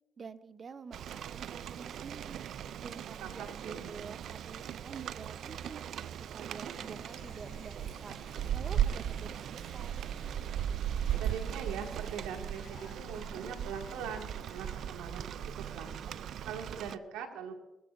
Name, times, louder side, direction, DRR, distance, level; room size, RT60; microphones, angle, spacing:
voice 1, 0.2-2.4 2.8-5.8 6.3-8.1 8.5-10.0, right 5 dB, 45° right, 13 dB, 0.8 m, -48 dB
Rain, 0.9-17.0, right 10 dB, 65° right, 0.4 m, -38 dB
voice 2, 3.2-3.9 11.2-16.1 16.4-17.5, right 7 dB, 85° right, 3 dB, 2.1 m, -42 dB
sound 1, 6.7-14.7, left 5 dB, 55° left, 5.1 m, -55 dB
23.0 x 15.0 x 2.6 m, 1.1 s
supercardioid pair, 70°, 0 cm